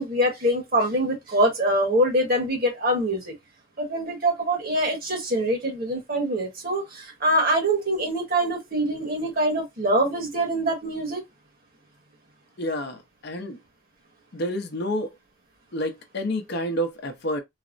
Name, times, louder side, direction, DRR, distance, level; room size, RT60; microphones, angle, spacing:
voice 1, 0.0-3.3 3.8-11.2, right 1 dB, 45° right, 1.3 m, -24 dB
voice 2, 12.6-13.6 14.3-15.1 15.7-17.4, equal, 55° left, 0.7 m, -29 dB
4.0 x 2.1 x 2.4 m
head